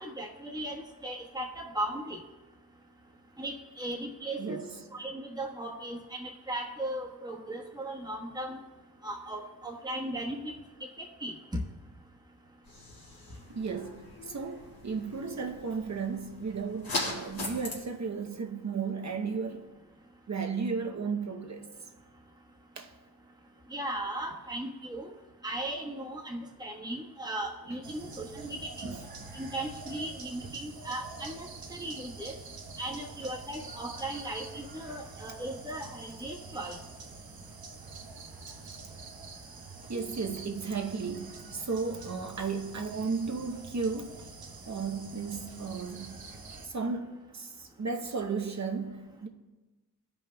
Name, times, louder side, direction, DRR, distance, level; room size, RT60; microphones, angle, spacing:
voice 1, 0.0-2.2 3.4-4.6 4.9-8.6 9.0-10.5 11.0-11.3 23.7-25.1 25.4-29.0 29.3-32.4 32.8-36.8, right 1 dB, 10° right, 1.2 m, -37 dB
voice 2, 4.4-4.7 13.5-19.7 20.3-21.7 22.8-22.9 28.8-29.1 30.4-30.5 39.9-44.2 44.7-46.2 46.6-49.3, right 5 dB, 45° right, 0.8 m, -34 dB
sound 1, 12.6-17.8, left 2 dB, 65° left, 2.1 m, -40 dB
sound 2, 27.8-46.7, right 3 dB, 65° right, 1.0 m, -46 dB
15.0 x 5.4 x 2.2 m
wide cardioid pair, 75°, 38 cm